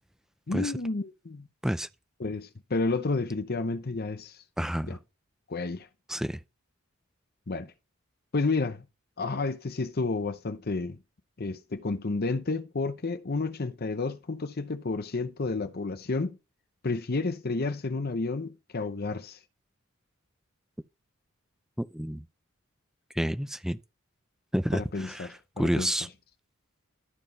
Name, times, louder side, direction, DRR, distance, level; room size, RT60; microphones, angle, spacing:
voice 1, 0.5-1.5 2.2-4.4 4.8-5.0 5.5-5.9 7.5-7.7 8.3-8.8 9.2-11.0 11.4-16.4 16.8-19.4 24.7-25.9, left 3 dB, 45° left, 0.7 m, -31 dB
voice 2, 4.6-5.0 6.1-6.4 21.8-22.2 23.2-23.8 24.5-25.3 25.6-26.1, equal, ahead, 0.5 m, -29 dB
13.5 x 4.6 x 5.3 m
head